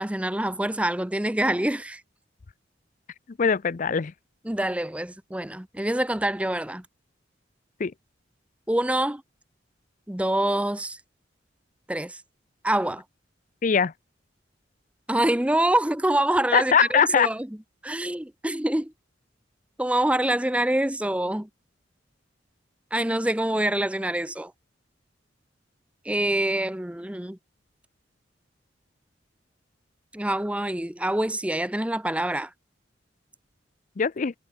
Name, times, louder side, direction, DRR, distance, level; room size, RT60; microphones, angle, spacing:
voice 1, 0.0-2.0 4.4-6.9 8.7-9.2 10.1-11.0 11.9-12.2 12.6-13.0 15.1-17.5 17.8-18.9 19.8-21.5 22.9-24.5 26.0-27.4 30.1-32.5, right 1 dB, 5° right, 0.7 m, -25 dB
voice 2, 3.4-4.1 7.8-7.9 13.6-13.9 16.5-17.3 34.0-34.3, left 6 dB, 45° left, 0.5 m, -21 dB
head